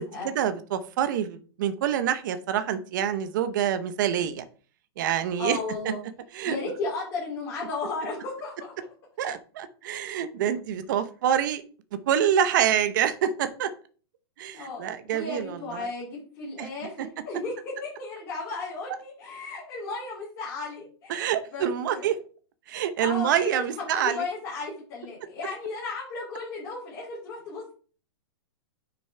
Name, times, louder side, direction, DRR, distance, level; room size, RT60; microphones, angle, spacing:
voice 1, 0.0-4.4 5.0-5.6 6.3-6.6 9.2-11.6 12.1-13.7 14.4-15.9 16.6-16.7 17.0-17.1 21.1-22.2 22.7-24.3, right 9 dB, 45° right, 11 dB, 0.8 m, -26 dB
voice 2, 5.4-6.0 6.4-8.7 14.5-17.5 17.8-22.1 23.0-23.6 23.9-27.7, left 3 dB, 25° left, -7 dB, 4.0 m, -35 dB
9.2 x 6.1 x 3.3 m, 0.41 s
hypercardioid pair, 170°, 14 cm